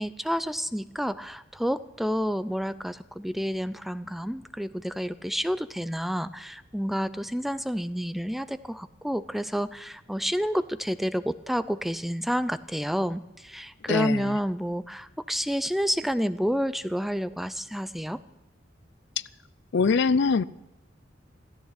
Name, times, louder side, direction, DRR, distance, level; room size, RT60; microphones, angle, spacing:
voice 1, 0.0-18.2, equal, ahead, 14 dB, 0.4 m, -29 dB
voice 2, 13.9-14.4 19.7-20.4, left 4 dB, 65° left, 18 dB, 0.5 m, -23 dB
16.0 x 13.5 x 5.9 m, 0.95 s
head